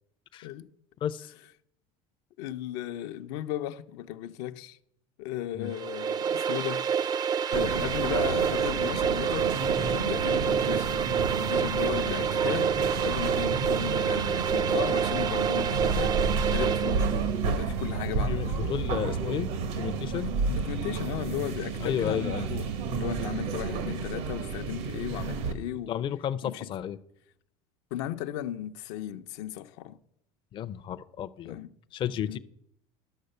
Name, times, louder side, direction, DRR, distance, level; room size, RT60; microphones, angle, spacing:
voice 1, 1.0-1.3 5.5-5.7 11.9-12.1 18.3-20.3 21.8-22.5 25.9-27.0 30.5-31.6 31.9-32.4, left 10 dB, 35° left, 0.5 m, -32 dB
voice 2, 2.4-4.8 5.2-7.1 7.5-10.9 11.3-18.7 20.1-26.0 26.4-26.7 27.9-30.0 31.4-31.7 32.3-32.4, left 12 dB, 80° left, 0.6 m, -36 dB
sound 1, 5.7-17.3, right 7 dB, 30° right, 0.4 m, -28 dB
sound 2, 7.5-25.5, right 5 dB, 80° right, 1.4 m, -31 dB
sound 3, 12.5-20.3, right 12 dB, 55° right, 0.9 m, -39 dB
11.5 x 6.4 x 6.7 m
supercardioid pair, 115°, 14 cm